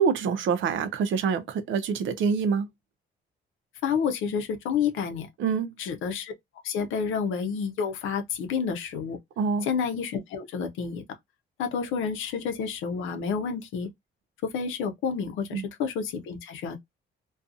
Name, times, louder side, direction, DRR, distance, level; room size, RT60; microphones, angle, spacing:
voice 1, 0.0-2.7 5.4-5.7 9.4-9.7 15.5-15.6, right 6 dB, 75° right, 0.6 m, -25 dB
voice 2, 3.8-5.3 5.8-6.3 6.6-9.2 9.6-11.0 11.6-13.9 14.4-16.8, left 6 dB, 90° left, 0.6 m, -29 dB
2.6 x 2.3 x 2.4 m
cardioid pair, 90°, 20 cm